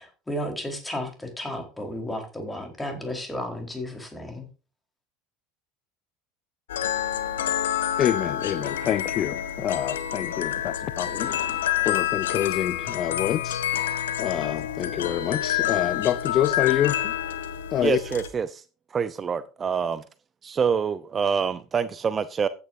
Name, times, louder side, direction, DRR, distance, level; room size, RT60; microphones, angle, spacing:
voice 1, 0.0-4.5, left 1 dB, 10° left, 4.3 m, -33 dB
sound 1, 6.7-18.3, left 11 dB, 75° left, 1.2 m, -28 dB
voice 2, 8.0-13.9 14.2-17.1 17.7-18.0, left 11 dB, 45° left, 0.6 m, -27 dB
voice 3, 17.8-18.6 18.9-20.0 20.4-22.5, right 6 dB, 30° right, 0.7 m, -26 dB
15.0 x 9.6 x 2.7 m
hypercardioid pair, 75°, 0 cm